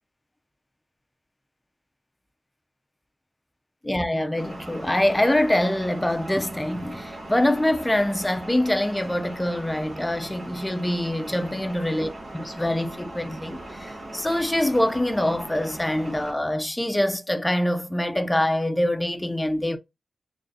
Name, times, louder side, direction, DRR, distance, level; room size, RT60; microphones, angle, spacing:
voice 1, 3.8-19.8, left 1 dB, 15° left, 0.5 m, -24 dB
sound 1, 4.4-16.3, right 1 dB, 65° right, 1.1 m, -39 dB
3.8 x 3.3 x 2.6 m
cardioid pair, 65°, 0 cm